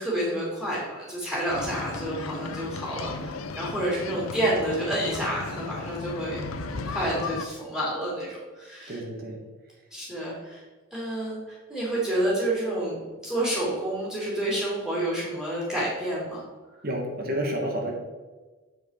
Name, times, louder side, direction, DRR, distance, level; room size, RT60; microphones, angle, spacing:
voice 1, 0.0-9.0 9.9-10.6 10.9-16.4, right 1 dB, ahead, -6 dB, 2.7 m, -29 dB
sound 1, 1.5-7.5, left 3 dB, 65° left, 0.6 m, -35 dB
voice 2, 8.9-9.4 16.8-17.9, equal, 40° right, 0 dB, 1.3 m, -30 dB
7.8 x 4.8 x 4.8 m, 1.3 s
head